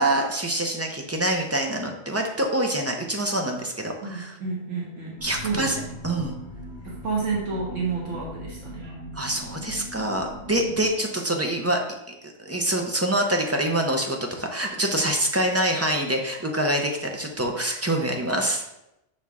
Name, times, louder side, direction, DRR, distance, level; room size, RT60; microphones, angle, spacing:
voice 1, 0.0-4.3 5.2-6.3 9.1-11.8 12.4-18.6, right 1 dB, 20° right, 2 dB, 0.4 m, -25 dB
voice 2, 4.0-5.9 6.8-9.0, right 4 dB, 85° right, -3 dB, 1.7 m, -30 dB
sound 1, 5.2-10.9, equal, 60° right, 2.1 m, -40 dB
6.2 x 4.4 x 3.5 m, 0.86 s
omnidirectional pair, 1.2 m